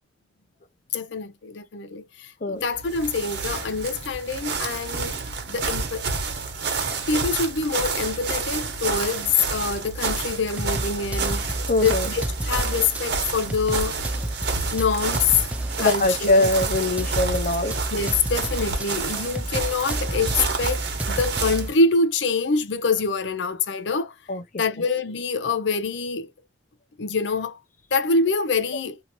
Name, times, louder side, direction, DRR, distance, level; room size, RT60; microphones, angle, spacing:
voice 1, 0.9-5.2 5.5-6.1 7.1-14.0 14.7-15.4 15.8-16.5 17.9-24.1 24.6-26.3 27.0-27.6 27.9-29.0, left 4 dB, 80° left, 0.6 m, -25 dB
sound 1, 2.7-21.7, right 4 dB, 65° right, 1.1 m, -29 dB
sound 2, 10.0-10.1 10.6-13.0 13.5-16.0 16.4-18.9 19.4-21.7, right 1 dB, 10° right, 0.3 m, -30 dB
voice 2, 11.7-12.1 15.8-17.7 24.3-24.4, left 2 dB, 50° left, 0.7 m, -22 dB
2.8 x 2.6 x 2.9 m
head